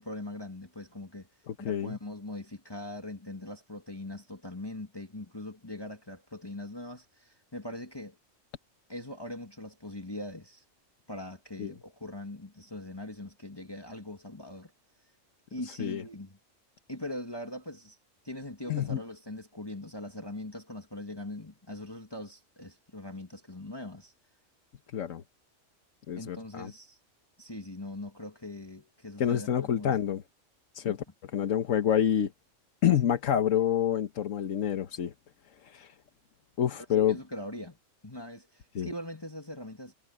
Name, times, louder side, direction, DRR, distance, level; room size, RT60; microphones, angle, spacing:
voice 1, 0.0-1.3 1.6-8.2 8.9-10.6 11.1-14.7 15.5-16.4 16.9-18.0 18.2-24.1 26.2-27.0 27.4-30.0 30.8-31.0 36.8-37.8 38.0-39.9, left 1 dB, 20° left, 2.1 m, -41 dB
voice 2, 1.5-1.9 11.6-11.7 15.7-16.0 18.7-19.0 24.9-25.2 26.1-26.7 29.2-30.2 30.7-31.0 31.3-32.3 32.8-35.1 35.6-35.9 36.6-37.2 38.7-38.9, left 9 dB, 85° left, 1.4 m, -27 dB
omnidirectional pair, 1.3 m